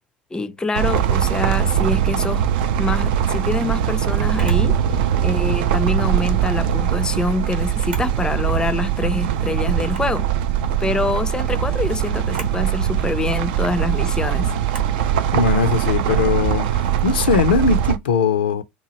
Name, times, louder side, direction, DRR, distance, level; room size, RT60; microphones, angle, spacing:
voice 1, 0.3-2.5 2.8-4.8 5.2-10.3 10.8-14.5, left 2 dB, 15° left, 0.4 m, -25 dB
sound 1, 0.7-18.0, right 9 dB, 65° right, 0.3 m, -21 dB
Camera, 4.3-4.7 6.4-6.8 7.7-8.2 8.6-8.7 9.8-10.2 12.2-12.6 14.6-15.0, right 3 dB, 80° right, 0.8 m, -37 dB
voice 2, 15.3-18.6, left 5 dB, 75° left, 0.4 m, -20 dB
2.8 x 2.3 x 2.8 m
figure-of-eight pair, 70°, 5 cm